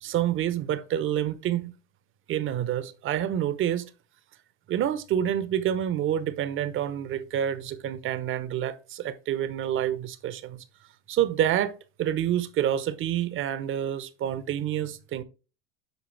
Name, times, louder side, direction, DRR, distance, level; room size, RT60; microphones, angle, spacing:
voice 1, 0.0-1.8 2.3-3.9 4.7-10.6 11.1-15.2, right 10 dB, 45° right, 0.9 m, -28 dB
8.0 x 5.3 x 3.3 m
hypercardioid pair, 85°, 29 cm